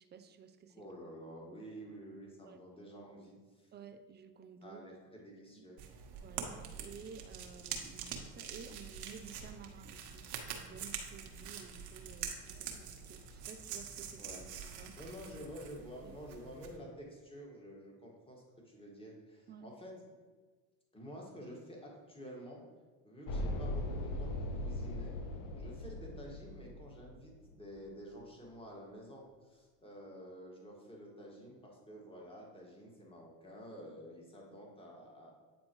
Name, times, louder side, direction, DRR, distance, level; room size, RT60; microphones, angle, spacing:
voice 1, 0.0-0.9 2.5-2.6 3.7-4.8 5.6-5.7 6.2-15.0 16.0-16.1 19.5-19.7, right 6 dB, 20° right, 8 dB, 0.5 m, -53 dB
voice 2, 0.7-3.7 4.6-5.8 14.2-14.5 15.0-19.9 20.9-22.6 23.0-25.2 25.6-35.3, equal, 10° left, -1 dB, 1.8 m, -50 dB
sound 1, 5.8-16.8, right 7 dB, 55° right, 1.2 m, -45 dB
sound 2, 23.3-27.5, left 1 dB, 40° left, 0.9 m, -39 dB
8.7 x 4.1 x 3.1 m, 1.4 s
hypercardioid pair, 80°, 48 cm